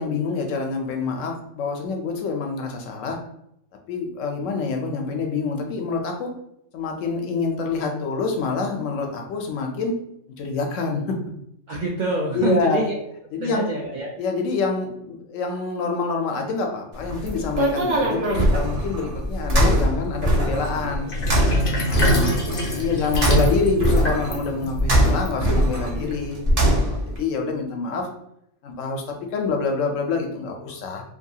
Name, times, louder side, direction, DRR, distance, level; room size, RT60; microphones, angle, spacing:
voice 1, 0.0-3.2 3.9-6.3 6.7-9.9 10.4-11.2 12.3-12.8 13.3-13.7 14.2-21.1 21.8-22.3 22.7-28.1 28.6-29.0 29.3-31.0, left 4 dB, 80° left, 3 dB, 0.9 m, -26 dB
voice 2, 11.7-13.0 13.4-14.1 22.0-23.4, right 2 dB, 65° right, -3 dB, 0.4 m, -28 dB
sound 1, 17.0-27.2, equal, 50° right, 0.9 m, -22 dB
Sink (filling or washing), 21.1-25.8, equal, 55° left, 0.7 m, -26 dB
2.7 x 2.3 x 2.7 m, 0.77 s
omnidirectional pair, 1.3 m